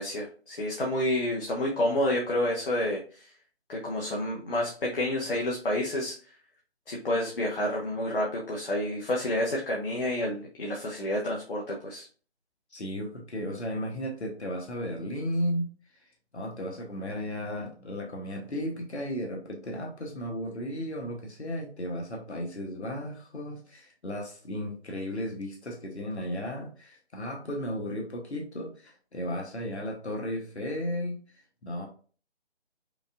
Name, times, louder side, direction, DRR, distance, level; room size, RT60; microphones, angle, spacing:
voice 1, 0.0-3.3 3.7-6.1 6.9-12.1, left 1 dB, 55° left, -2 dB, 1.0 m, -29 dB
voice 2, 12.7-15.7 16.3-31.2 31.6-31.9, equal, 80° left, 0 dB, 1.1 m, -34 dB
5.2 x 2.5 x 2.4 m, 0.41 s
figure-of-eight pair, 150°, 33 cm